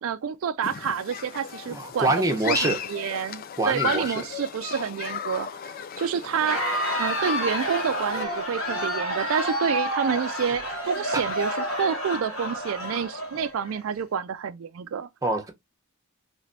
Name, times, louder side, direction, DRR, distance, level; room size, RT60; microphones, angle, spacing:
voice 1, 0.0-15.1, right 7 dB, 70° right, 0.4 m, -29 dB
Human group actions, 0.6-8.3, left 8 dB, 45° left, 0.3 m, -35 dB
voice 2, 1.7-2.8 3.6-4.2 11.1-11.2 15.2-15.5, right 2 dB, 15° right, 0.8 m, -25 dB
Crowd, 6.3-13.8, equal, 75° left, 1.6 m, -29 dB
3.3 x 3.2 x 2.5 m
head